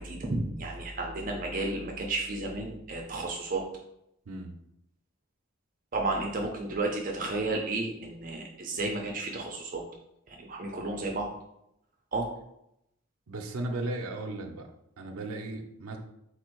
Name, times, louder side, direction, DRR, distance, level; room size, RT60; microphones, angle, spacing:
voice 1, 0.0-3.6 5.9-9.8 10.3-11.3 12.1-12.3, right 2 dB, 40° right, 1 dB, 0.5 m, -32 dB
voice 2, 4.3-4.6 13.3-14.7 15.0-16.0, right 2 dB, 85° right, 3 dB, 0.6 m, -36 dB
4.1 x 2.6 x 4.4 m, 0.79 s
head